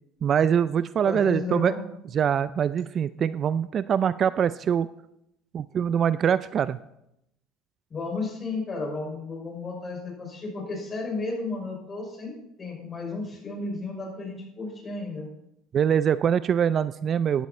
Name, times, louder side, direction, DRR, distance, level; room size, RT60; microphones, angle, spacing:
voice 1, 0.2-1.7 2.1-4.9 5.5-6.8 15.7-17.5, right 8 dB, 45° right, 16 dB, 0.4 m, -23 dB
voice 2, 1.0-1.8 7.9-15.3, left 3 dB, 30° left, 0 dB, 5.9 m, -33 dB
14.5 x 11.0 x 4.3 m, 0.81 s
supercardioid pair, 95°, 0 cm